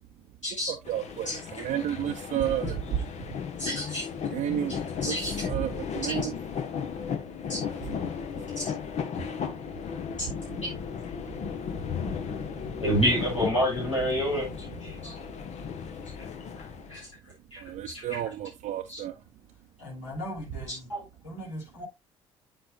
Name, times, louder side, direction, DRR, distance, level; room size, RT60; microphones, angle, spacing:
voice 1, 0.7-3.0 4.3-6.3 7.8-7.9 11.4-12.3 12.7-12.8 17.6-19.2, right 11 dB, 50° right, 0.8 m, -32 dB
sound 1, 0.8-17.1, left 7 dB, 45° left, 1.2 m, -35 dB
voice 2, 3.6-4.1 4.7-5.3 6.0-6.2 7.5-7.6 8.6-8.7 10.6-10.7 12.8-15.2 16.2-16.3 16.6-17.1 17.5-18.2 18.9-19.0 20.9-21.0, equal, 85° left, 4.2 m, -29 dB
voice 3, 19.8-20.9 21.2-21.8, equal, 70° left, 3.1 m, -38 dB
8.4 x 7.7 x 2.5 m
figure-of-eight pair, 50°, 16 cm